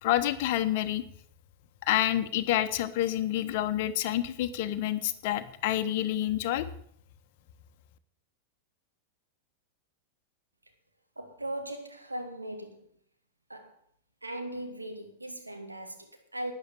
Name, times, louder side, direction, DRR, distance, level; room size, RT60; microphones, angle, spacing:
voice 1, 0.0-1.0 1.9-6.6, left 13 dB, 50° left, 1.0 m, -28 dB
voice 2, 11.2-12.9 13.5-13.7 14.2-16.5, right 1 dB, 85° right, 2.0 m, -39 dB
12.0 x 9.3 x 7.2 m
figure-of-eight pair, 90°, 0 cm